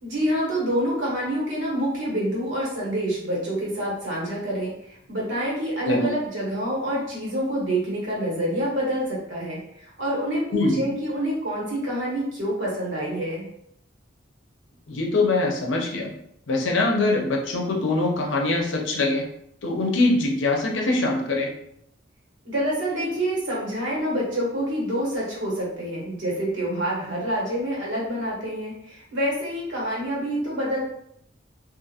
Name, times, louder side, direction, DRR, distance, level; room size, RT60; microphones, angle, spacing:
voice 1, 0.0-13.4 22.4-30.8, right 1 dB, 80° right, -5 dB, 1.3 m, -27 dB
voice 2, 14.9-16.1 16.5-19.2 19.6-21.5, left 2 dB, 80° left, 1 dB, 0.6 m, -23 dB
2.5 x 2.5 x 2.7 m, 0.74 s
head